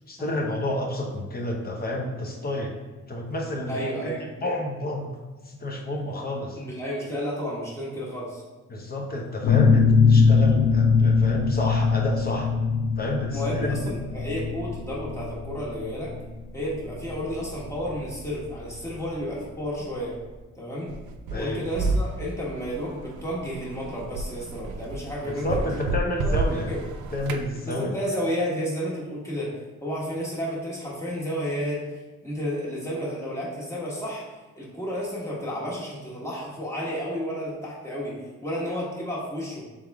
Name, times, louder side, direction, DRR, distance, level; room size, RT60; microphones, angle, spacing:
voice 1, 0.1-2.7 3.1-5.2 5.4-6.6 8.7-12.5 13.0-13.9 21.3-21.6 25.2-26.7 27.1-27.9, left 1 dB, 30° left, 1 dB, 0.8 m, -30 dB
voice 2, 3.7-4.2 6.5-8.4 13.3-16.1 16.5-20.2 20.5-20.9 21.3-25.8 26.2-26.8 27.6-31.9 32.2-34.3 34.6-39.7, equal, 10° left, -6 dB, 1.4 m, -32 dB
sound 1, 9.4-18.8, left 5 dB, 90° left, 1.3 m, -21 dB
sound 2, 20.9-27.5, right 3 dB, 75° right, 0.5 m, -30 dB
3.5 x 3.4 x 3.5 m, 1.2 s
cardioid pair, 90°, 30 cm